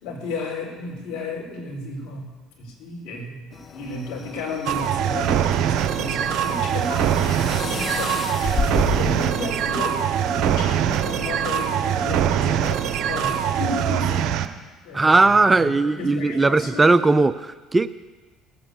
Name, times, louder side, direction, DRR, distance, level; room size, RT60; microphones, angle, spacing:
voice 1, 0.0-2.3 2.6-10.0 10.3-14.3 14.8-15.3 15.6-16.8, left 3 dB, 60° left, -1 dB, 4.5 m, -33 dB
sound 1, 3.5-13.7, left 3 dB, 35° left, 1.0 m, -34 dB
sound 2, 4.6-14.5, right 9 dB, 55° right, 0.9 m, -23 dB
voice 2, 14.9-17.9, right 3 dB, 20° right, 14 dB, 0.5 m, -18 dB
18.0 x 8.7 x 7.1 m, 1.3 s
hypercardioid pair, 60°, 0 cm